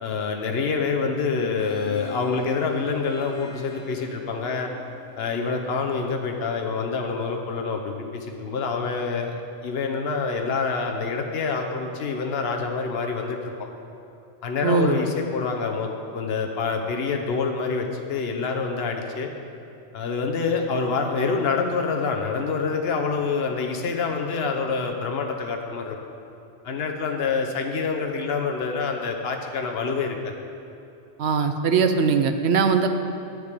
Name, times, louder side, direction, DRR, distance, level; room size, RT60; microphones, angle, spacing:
voice 1, 0.0-4.7 5.2-9.3 9.6-13.7 14.4-19.3 19.9-26.0 26.6-30.3, left 4 dB, 55° left, 3 dB, 1.1 m, -26 dB
Harp, 1.6-6.8, left 3 dB, 40° left, 2.3 m, -42 dB
voice 2, 14.6-15.0 31.2-32.9, right 5 dB, 65° right, 7 dB, 0.9 m, -20 dB
10.0 x 5.2 x 8.3 m, 2.8 s
omnidirectional pair, 1.3 m